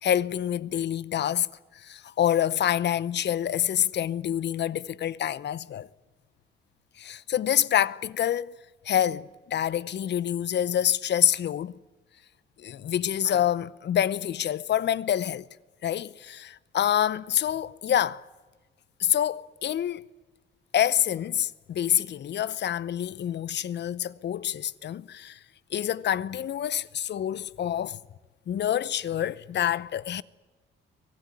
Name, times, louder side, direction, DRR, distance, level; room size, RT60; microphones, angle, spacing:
voice 1, 0.0-1.5 1.8-5.9 7.0-8.5 8.8-11.7 12.6-15.4 15.8-18.2 19.0-20.0 20.7-25.4 25.7-28.0 28.5-30.2, left 10 dB, 60° left, 0.8 m, -27 dB
24.5 x 18.0 x 9.8 m
cardioid pair, 105°, 21 cm